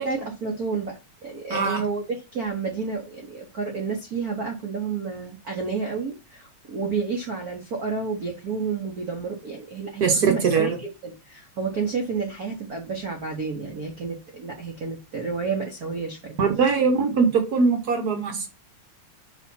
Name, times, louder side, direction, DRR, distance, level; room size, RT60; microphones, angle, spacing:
voice 1, 0.0-10.7 11.0-16.4, right 5 dB, 80° right, 0.8 m, -30 dB
voice 2, 1.5-1.8 10.0-10.8 16.4-18.5, right 5 dB, 50° right, 1.1 m, -21 dB
5.6 x 3.4 x 5.5 m
omnidirectional pair, 3.3 m